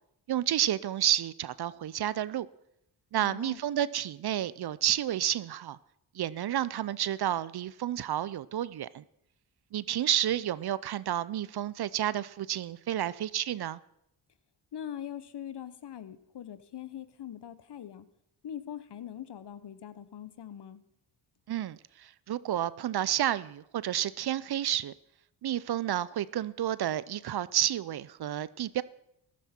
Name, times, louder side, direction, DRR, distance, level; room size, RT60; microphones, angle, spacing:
voice 1, 0.3-2.5 3.1-5.8 6.1-9.0 9.7-13.8 21.5-24.9 25.4-28.8, right 11 dB, 55° right, 0.6 m, -30 dB
voice 2, 3.2-3.6 14.7-18.0 18.4-20.8, left 10 dB, 55° left, 1.0 m, -42 dB
14.5 x 12.0 x 4.4 m
supercardioid pair, 50°, 48 cm